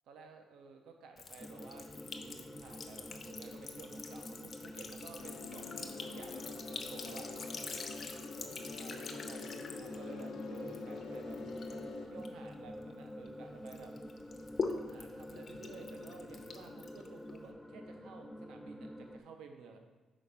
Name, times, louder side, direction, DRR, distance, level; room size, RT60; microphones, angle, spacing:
voice 1, 0.1-7.3 8.7-11.4 12.0-13.9 14.9-19.8, right 5 dB, 80° right, 4 dB, 0.6 m, -53 dB
Sink (filling or washing) / Trickle dribble, 1.2-13.3 13.7-17.5, left 4 dB, 45° left, 0.7 m, -45 dB
sound 1, 1.4-19.2, left 1 dB, 5° left, 0.3 m, -48 dB
sound 2, 5.2-12.1, left 5 dB, 85° left, 0.7 m, -47 dB
5.0 x 4.0 x 5.7 m, 1.3 s
cardioid pair, 90°, 0 cm